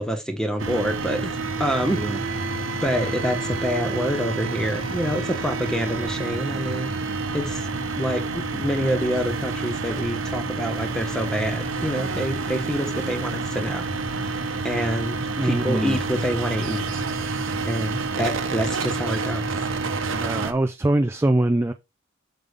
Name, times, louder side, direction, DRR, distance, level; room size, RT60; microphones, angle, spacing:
voice 1, 0.0-2.0 2.8-6.9 7.3-7.6 7.9-13.9 14.2-16.9 17.1-17.3 17.6-19.5, equal, 5° left, 1.2 m, -27 dB
sound 1, 0.6-20.5, right 3 dB, 70° right, 0.9 m, -28 dB
voice 2, 15.4-16.0 20.2-21.7, right 1 dB, 15° right, 0.4 m, -23 dB
6.7 x 5.3 x 3.4 m
head